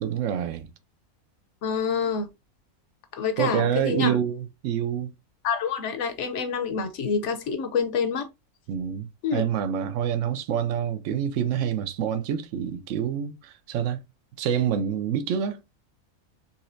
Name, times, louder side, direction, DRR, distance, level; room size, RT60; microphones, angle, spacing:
voice 1, 0.0-0.7 3.4-5.1 8.7-9.1 9.3-14.0 14.4-15.6, right 8 dB, 65° right, 0.9 m, -27 dB
voice 2, 1.6-2.3 3.1-4.1 5.4-8.3 9.2-9.4, left 6 dB, 60° left, 0.9 m, -27 dB
4.1 x 3.0 x 2.5 m
omnidirectional pair, 1.5 m